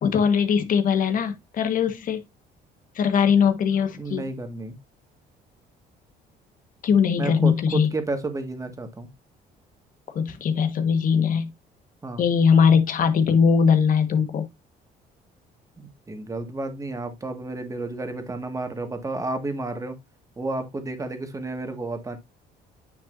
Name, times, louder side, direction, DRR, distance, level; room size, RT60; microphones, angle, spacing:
voice 1, 0.0-2.2 2.9-4.3 6.8-7.9 10.1-11.5 12.2-14.5, left 6 dB, 55° left, 1.5 m, -20 dB
voice 2, 3.9-4.8 7.2-9.1 12.0-12.3 15.8-20.0 20.4-22.2, right 2 dB, 20° right, 1.9 m, -31 dB
9.4 x 5.9 x 2.7 m
cardioid pair, 110°, 17 cm